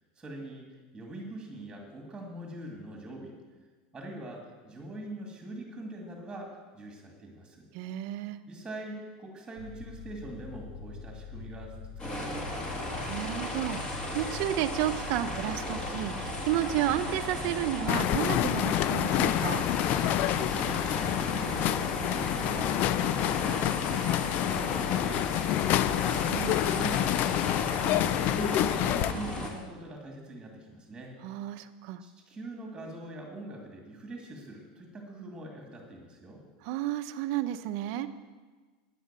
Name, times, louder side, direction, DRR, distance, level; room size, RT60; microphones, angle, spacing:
voice 1, 0.2-3.4 3.9-7.7 8.5-11.8 12.0-12.9 20.4-20.8 21.2-27.4 27.8-31.1 32.0-36.4, right 1 dB, 10° right, 1 dB, 2.2 m, -43 dB
voice 2, 7.7-8.4 12.9-19.7 26.3-26.6 31.2-32.0 36.6-38.1, right 13 dB, 55° right, 10 dB, 0.8 m, -32 dB
sound 1, 9.6-29.5, left 5 dB, 65° left, 2.2 m, -44 dB
sound 2, 12.0-29.5, left 1 dB, 20° left, 2.4 m, -35 dB
sound 3, 17.9-29.1, left 14 dB, 40° left, 0.3 m, -28 dB
11.0 x 9.5 x 7.5 m, 1.4 s
supercardioid pair, 145°, 4 cm